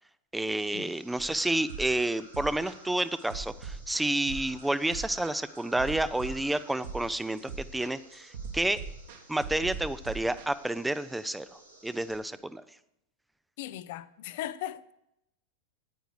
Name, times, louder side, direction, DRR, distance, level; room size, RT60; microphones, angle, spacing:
voice 1, 0.3-8.8 9.3-12.6, right 1 dB, 5° right, 0.4 m, -30 dB
sound 1, 0.6-12.2, right 1 dB, 90° right, 4.6 m, -55 dB
sound 2, 1.2-10.5, right 4 dB, 55° right, 1.6 m, -41 dB
voice 2, 13.6-14.9, left 13 dB, 50° left, 0.4 m, -38 dB
9.8 x 9.0 x 4.6 m
figure-of-eight pair, 90°, 0 cm